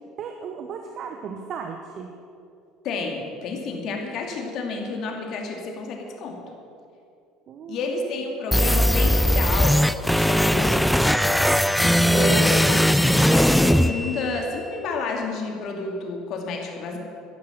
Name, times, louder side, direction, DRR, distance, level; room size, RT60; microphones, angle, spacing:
voice 1, 0.2-2.1 7.5-7.8 10.3-10.6, right 6 dB, 50° right, 4 dB, 1.0 m, -36 dB
voice 2, 2.8-6.4 7.7-9.8 10.1-17.0, left 3 dB, 55° left, 1 dB, 2.6 m, -30 dB
sound 1, 8.5-14.5, equal, ahead, 0.5 m, -19 dB
14.0 x 10.5 x 5.9 m, 2.5 s
hypercardioid pair, 65°, 0 cm